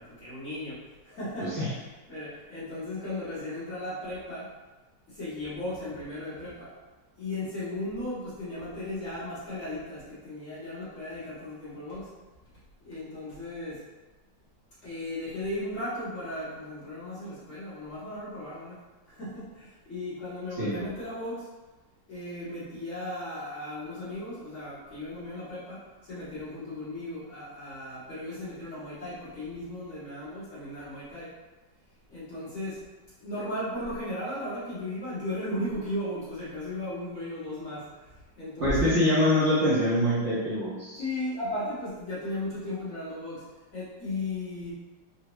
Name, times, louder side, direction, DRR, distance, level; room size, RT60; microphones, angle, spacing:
voice 1, 0.0-4.5 5.1-6.7 7.2-12.1 12.8-13.8 14.8-18.8 19.1-21.5 22.1-31.4 32.1-32.8 33.2-39.1 41.0-44.7, left 1 dB, 45° left, -12 dB, 1.6 m, -36 dB
voice 2, 38.6-41.0, left 1 dB, 50° right, -10 dB, 1.0 m, -24 dB
3.6 x 2.2 x 3.0 m, 1.2 s
omnidirectional pair, 1.9 m